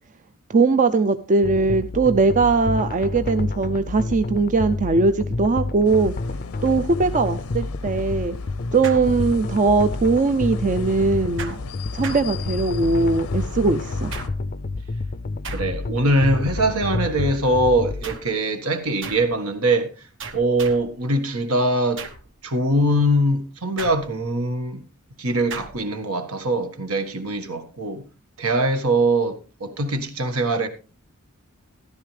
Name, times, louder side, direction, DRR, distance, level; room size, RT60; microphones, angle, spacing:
voice 1, 0.5-6.1 6.6-8.4 8.7-11.6 11.9-14.1, right 3 dB, 35° right, 0.5 m, -20 dB
sound 1, 1.4-18.2, left 3 dB, 40° left, 0.5 m, -29 dB
sound 2, 5.8-14.3, left 4 dB, 80° left, 0.6 m, -36 dB
sound 3, 8.8-9.7 11.4-12.9 14.1-14.7 15.4-16.1 18.0-18.4 19.0-19.4 20.2-21.0 22.0-22.4 23.8-24.4 25.5-25.9, right 5 dB, 60° right, 1.2 m, -37 dB
voice 2, 15.5-20.1 20.3-22.0 22.4-24.8 25.2-28.0 28.4-30.7, right 1 dB, 80° right, 1.6 m, -22 dB
13.5 x 11.5 x 3.3 m
head